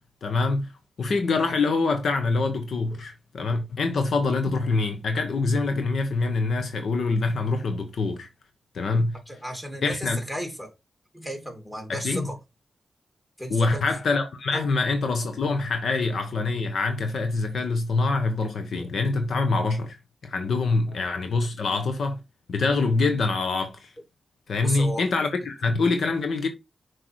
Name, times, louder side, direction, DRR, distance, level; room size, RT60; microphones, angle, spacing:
voice 1, 0.2-0.7 1.0-8.3 8.7-9.2 9.8-10.2 11.9-12.3 13.5-20.0 20.2-22.2 22.5-23.9 24.5-26.5, left 3 dB, 75° left, 1.2 m, -25 dB
voice 2, 9.3-10.7 11.1-12.4 13.4-13.8 14.5-14.7 18.8-18.9 20.9-21.0 21.4-21.5 24.6-25.1 25.6-25.8, equal, 10° left, 3.5 m, -34 dB
6.3 x 4.8 x 4.7 m
cardioid pair, 70°, 0 cm